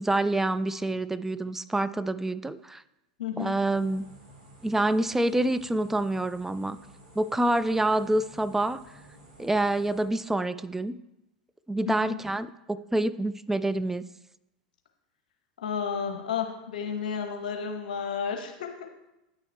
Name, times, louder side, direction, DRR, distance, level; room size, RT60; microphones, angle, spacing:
voice 1, 0.0-2.8 3.4-4.1 4.6-6.8 7.2-8.8 9.4-10.9 11.7-14.1, right 1 dB, 5° right, 14 dB, 0.3 m, -27 dB
voice 2, 3.2-3.6 11.9-12.2 15.6-18.7, left 7 dB, 75° left, 4 dB, 0.9 m, -32 dB
sound 1, 3.7-10.0, right 1 dB, 75° right, 2.6 m, -53 dB
9.3 x 6.3 x 3.3 m, 0.94 s
hypercardioid pair, 95°, 4 cm